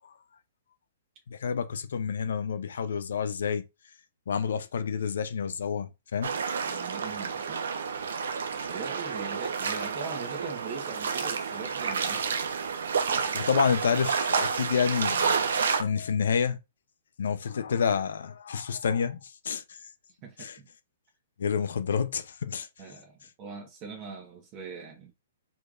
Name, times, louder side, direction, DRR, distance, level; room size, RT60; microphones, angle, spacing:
voice 1, 1.3-3.7 4.3-6.4 13.3-16.6 17.2-19.8 20.4-20.6 21.4-22.7, left 6 dB, 75° left, 0.6 m, -29 dB
sound 1, 6.2-15.8, right 5 dB, 75° right, 1.0 m, -30 dB
voice 2, 6.6-7.6 8.6-12.2 13.1-13.3 20.2-20.7 22.8-25.1, right 4 dB, 35° right, 1.4 m, -42 dB
4.7 x 4.4 x 2.5 m
hypercardioid pair, 130°, 0 cm